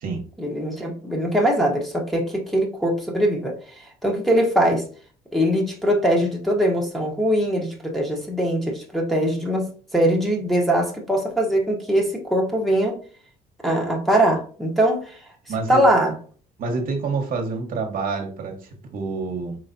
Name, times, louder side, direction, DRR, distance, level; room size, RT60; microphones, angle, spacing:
voice 1, 0.4-3.5 4.0-4.8 5.3-13.0 13.6-15.2 15.7-16.1, right 1 dB, ahead, 1.0 m, -21 dB
voice 2, 15.5-15.8 16.6-19.6, right 4 dB, 55° right, 1.1 m, -27 dB
4.5 x 3.2 x 2.6 m
cardioid pair, 110°, 17 cm